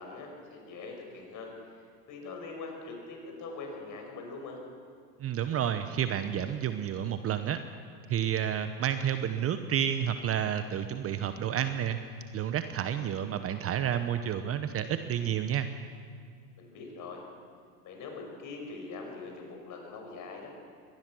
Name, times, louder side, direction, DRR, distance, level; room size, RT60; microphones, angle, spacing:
voice 1, 0.0-4.6 16.6-17.2 17.8-20.5, left 3 dB, 40° left, 2 dB, 5.8 m, -43 dB
voice 2, 5.2-7.6 8.1-12.0 12.3-15.7, right 9 dB, 30° right, 10 dB, 0.9 m, -30 dB
22.5 x 18.5 x 6.2 m, 2.2 s
hypercardioid pair, 100°, 48 cm